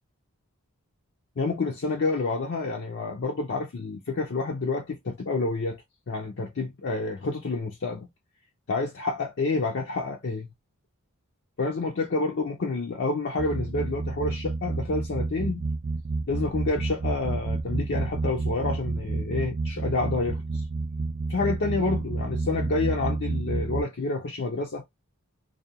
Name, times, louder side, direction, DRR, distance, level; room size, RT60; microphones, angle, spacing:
voice 1, 1.4-8.1 8.7-10.5 11.6-15.7 16.3-20.6 21.3-24.8, left 3 dB, 50° left, 0.5 m, -29 dB
sound 1, 13.4-23.8, right 3 dB, 30° right, 0.3 m, -30 dB
2.4 x 2.2 x 2.7 m
head